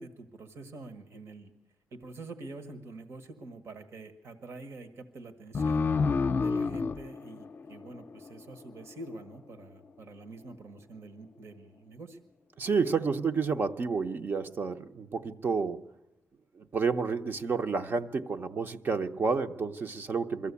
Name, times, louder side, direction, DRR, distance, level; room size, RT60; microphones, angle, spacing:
voice 1, 0.0-1.5 1.9-5.9 6.3-12.2 20.4-20.5, right 2 dB, 65° right, 10 dB, 1.5 m, -46 dB
sound 1, 5.5-8.7, left 4 dB, 40° left, 0.6 m, -29 dB
voice 2, 12.6-15.8 16.6-20.5, right 5 dB, 45° right, 7 dB, 0.7 m, -30 dB
22.5 x 14.5 x 8.4 m, 1.0 s
wide cardioid pair, 160°, 5 cm